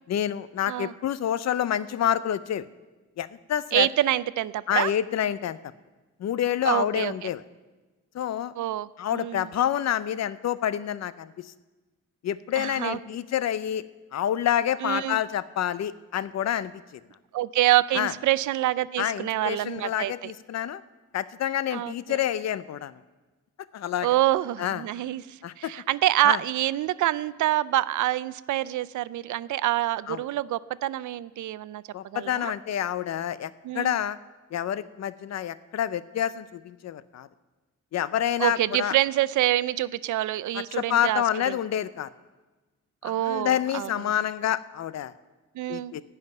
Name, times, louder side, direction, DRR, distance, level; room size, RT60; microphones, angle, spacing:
voice 1, 0.1-2.7 3.2-3.9 4.7-5.6 6.2-7.4 8.1-8.5 9.0-11.5 12.2-13.8 14.1-16.7 17.9-18.1 19.0-20.8 21.1-22.9 23.7-24.1 24.6-24.8 25.4-25.7 26.2-26.4 30.1-30.2 31.9-34.2 34.5-37.3 37.9-39.0 40.5-42.1 43.0-45.1 45.7-46.0, left 10 dB, 60° left, 16 dB, 0.6 m, -28 dB
voice 2, 3.7-4.9 6.6-7.3 8.6-9.5 12.6-13.0 14.8-15.2 17.3-20.3 21.7-22.2 24.0-31.8 32.1-32.5 33.6-34.0 38.4-41.6 43.0-44.1 45.6-45.9, right 14 dB, 80° right, 17 dB, 0.5 m, -26 dB
15.0 x 5.8 x 9.1 m, 1.2 s
cardioid pair, 120°, 29 cm